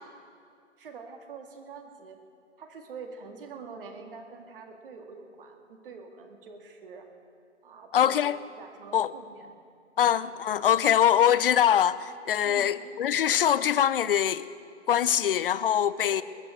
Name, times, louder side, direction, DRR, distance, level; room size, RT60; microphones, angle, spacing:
voice 1, 0.8-2.2 2.6-7.1 7.6-9.5 10.0-10.1 12.4-12.7 16.0-16.2, right 5 dB, 45° right, 2.1 m, -45 dB
voice 2, 7.9-8.4 8.9-9.1 10.0-14.5 14.9-16.2, left 10 dB, 50° left, 0.6 m, -23 dB
20.5 x 7.0 x 9.1 m
figure-of-eight pair, 140°, 37 cm